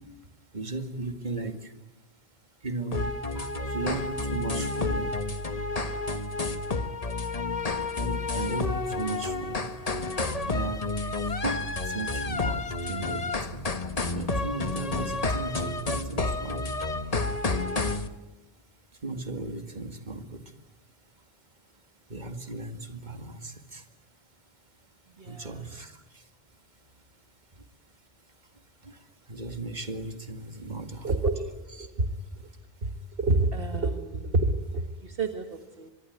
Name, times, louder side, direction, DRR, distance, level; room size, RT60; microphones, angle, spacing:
voice 1, 0.5-1.7 2.6-5.1 8.0-9.6 10.5-11.1 11.4-13.6 14.1-16.6 19.0-20.3 22.1-23.8 25.3-25.9 29.3-31.1, right 3 dB, 45° right, 7 dB, 2.3 m, -36 dB
sound 1, 2.9-18.1, left 3 dB, 40° left, 1.4 m, -30 dB
voice 2, 25.2-25.8 31.0-31.5 31.8-32.1 32.4-32.5 32.8-32.9 33.2-35.9, right 2 dB, 65° right, 6 dB, 1.8 m, -28 dB
24.5 x 22.0 x 9.5 m, 0.99 s
omnidirectional pair, 1.0 m